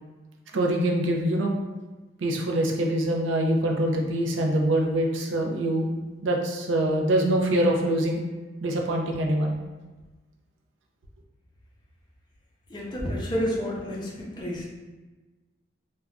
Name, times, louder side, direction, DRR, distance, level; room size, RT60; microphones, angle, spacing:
voice 1, 0.5-1.5 2.2-5.9 6.2-8.2 8.6-9.6, right 1 dB, 80° right, 1 dB, 0.5 m, -24 dB
voice 2, 12.7-14.7, equal, 25° left, -4 dB, 0.5 m, -30 dB
2.4 x 2.1 x 3.3 m, 1.2 s
head